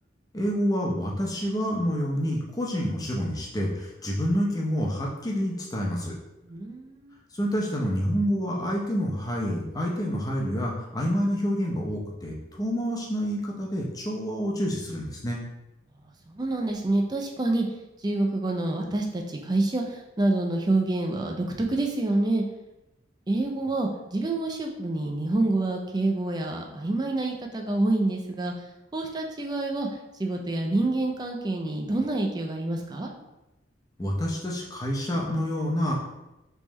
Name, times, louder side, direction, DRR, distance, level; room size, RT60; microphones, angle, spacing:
voice 1, 0.3-6.2 7.4-15.4 34.0-35.9, equal, 20° left, -2 dB, 0.7 m, -28 dB
voice 2, 6.5-7.1 16.3-17.6 18.0-22.4 23.3-28.5 28.9-29.9 30.2-33.1, right 2 dB, 20° right, 2 dB, 0.4 m, -27 dB
3.5 x 3.1 x 3.1 m, 0.95 s
head